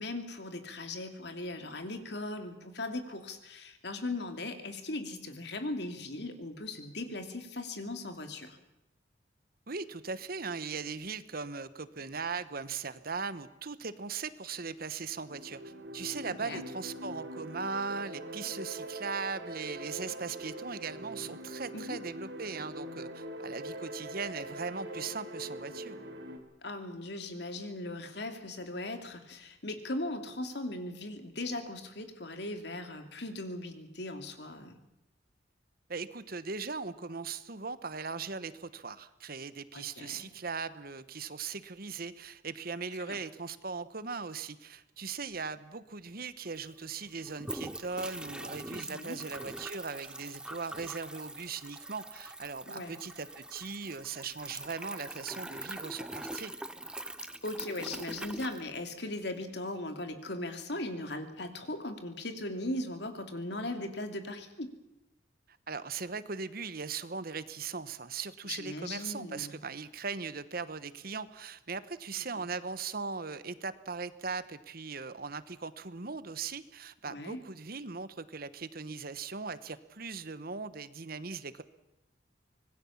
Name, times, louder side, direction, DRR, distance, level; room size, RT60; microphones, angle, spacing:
voice 1, 0.0-8.6 16.3-16.6 21.7-22.0 26.6-34.8 39.7-40.3 43.0-43.2 48.7-49.2 52.7-52.9 57.4-64.7 68.5-69.6 72.4-72.5 77.1-77.4, left 2 dB, 65° left, 7 dB, 2.7 m, -38 dB
voice 2, 9.7-26.0 35.9-56.5 65.7-81.6, right 5 dB, 55° right, 14 dB, 1.1 m, -39 dB
sound 1, 15.2-26.4, right 1 dB, 70° right, 3.5 m, -43 dB
sound 2, 46.2-46.3 46.5-59.3, right 1 dB, 5° right, 0.8 m, -43 dB
25.5 x 20.0 x 7.3 m, 0.90 s
head